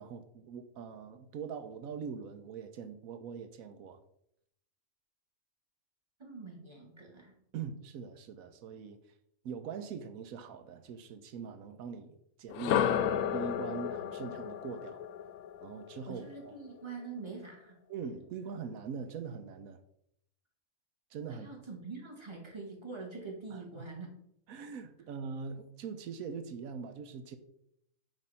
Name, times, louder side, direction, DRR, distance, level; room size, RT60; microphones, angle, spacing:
voice 1, 0.0-4.0 7.5-9.0 9.4-12.9 13.3-15.0 15.6-16.5 17.9-19.8 21.1-21.5 23.5-23.9 24.5-27.4, right 6 dB, 90° right, 8 dB, 1.1 m, -42 dB
voice 2, 6.2-7.4 16.1-17.8 21.3-24.1, right 4 dB, 20° right, 0 dB, 1.8 m, -44 dB
sound 1, 12.5-16.5, left 9 dB, 85° left, 1.0 m, -33 dB
8.9 x 3.1 x 5.6 m, 0.73 s
omnidirectional pair, 1.4 m